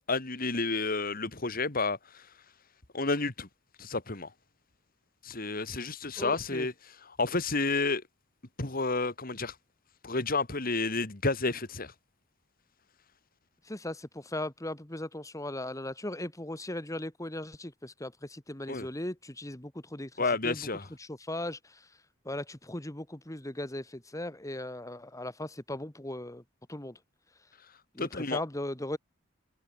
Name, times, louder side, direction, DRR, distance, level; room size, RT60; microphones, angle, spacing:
voice 1, 0.1-2.2 2.9-3.5 3.8-4.3 5.2-6.7 7.0-8.0 8.6-9.5 10.0-11.9 18.7-18.9 20.2-20.9 28.0-28.4, left 3 dB, 45° left, 2.3 m, -30 dB
voice 2, 6.2-6.7 13.7-20.1 20.4-20.6 21.0-21.8 22.3-26.4 26.7-26.9 28.0-29.0, left 1 dB, 15° left, 1.8 m, -38 dB
head